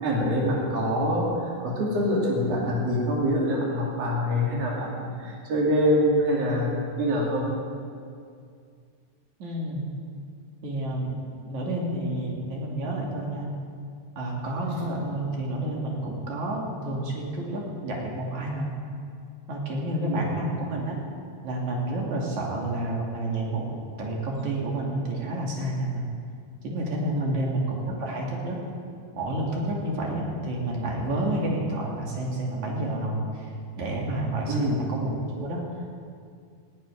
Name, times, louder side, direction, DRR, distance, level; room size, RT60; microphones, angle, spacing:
voice 1, 0.0-6.7 7.0-7.5 19.9-20.2 27.1-27.4 34.5-34.8, equal, 60° right, -4 dB, 3.6 m, -25 dB
voice 2, 9.4-9.9 10.6-11.1 11.5-13.5 14.2-18.7 19.5-21.0 21.4-26.1 26.6-28.6 29.1-33.5 33.8-35.6, right 1 dB, 75° right, -2 dB, 3.9 m, -30 dB
17.0 x 7.3 x 9.9 m, 2.3 s
omnidirectional pair, 3.3 m